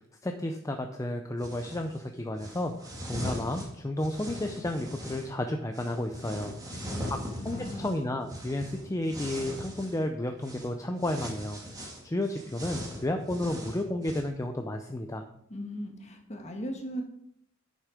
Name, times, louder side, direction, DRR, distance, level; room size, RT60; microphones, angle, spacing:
voice 1, 0.2-6.8 7.1-7.2 7.4-11.6 12.0-15.2, left 1 dB, 15° left, 5 dB, 0.6 m, -32 dB
sound 1, 1.4-1.9 2.4-5.3 5.7-10.0 10.4-10.7 11.0-14.2, equal, 20° right, 1.9 m, -40 dB
voice 2, 6.7-8.0 15.5-17.0, equal, 35° left, 3 dB, 1.6 m, -39 dB
9.6 x 6.6 x 4.9 m, 0.73 s
head